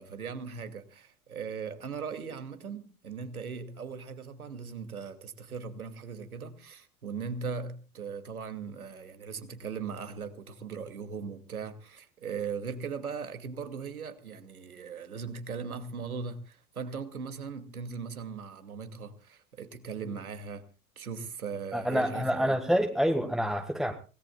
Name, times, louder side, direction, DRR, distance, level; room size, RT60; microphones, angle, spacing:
voice 1, 0.0-20.6 21.0-22.6, right 5 dB, 75° right, 2.6 m, -39 dB
voice 2, 21.7-23.9, equal, ahead, 1.7 m, -27 dB
25.0 x 18.5 x 2.4 m
figure-of-eight pair, 90°, 43 cm